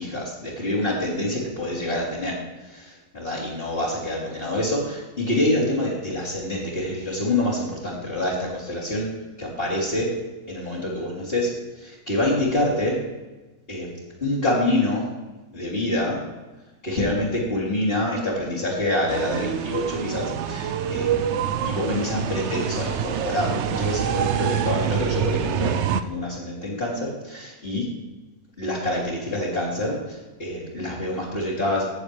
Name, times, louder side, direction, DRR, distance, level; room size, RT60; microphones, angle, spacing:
voice 1, 0.0-2.4 2.7-9.1 9.4-10.1 10.5-11.5 11.8-13.0 13.7-13.9 14.2-15.1 15.5-16.2 16.8-21.4 21.6-25.8 26.0-27.9 28.6-31.9, left 1 dB, 40° left, -9 dB, 2.9 m, -26 dB
sound 1, 19.1-26.0, right 9 dB, 65° right, 0.7 m, -26 dB
17.5 x 7.0 x 3.3 m, 1.1 s
omnidirectional pair, 1.6 m